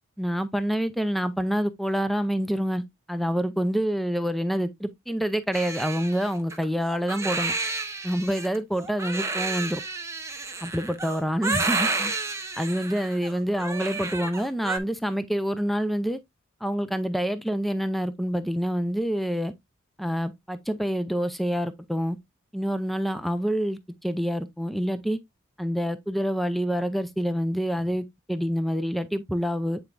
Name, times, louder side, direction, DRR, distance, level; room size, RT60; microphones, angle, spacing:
voice 1, 0.2-2.8 3.1-7.5 8.0-9.8 10.6-12.1 12.6-16.2 16.6-19.5 20.0-22.2 22.5-25.2 25.6-29.8, equal, ahead, 0.5 m, -27 dB
Crying sobbing, 5.5-14.8, right 3 dB, 15° right, 1.0 m, -31 dB
8.8 x 4.6 x 2.5 m
head